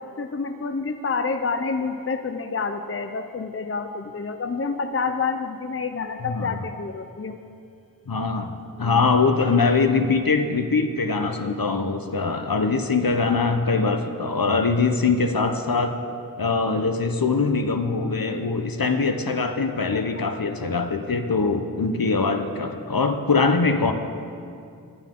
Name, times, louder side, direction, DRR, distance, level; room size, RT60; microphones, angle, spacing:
voice 1, 0.0-7.4 8.8-9.0 19.9-20.3, left 4 dB, 35° left, 8 dB, 0.7 m, -28 dB
voice 2, 6.2-6.6 8.1-15.9 16.4-23.9, left 4 dB, 65° left, 7 dB, 1.0 m, -22 dB
18.5 x 11.5 x 3.8 m, 2.5 s
wide cardioid pair, 40°, 37 cm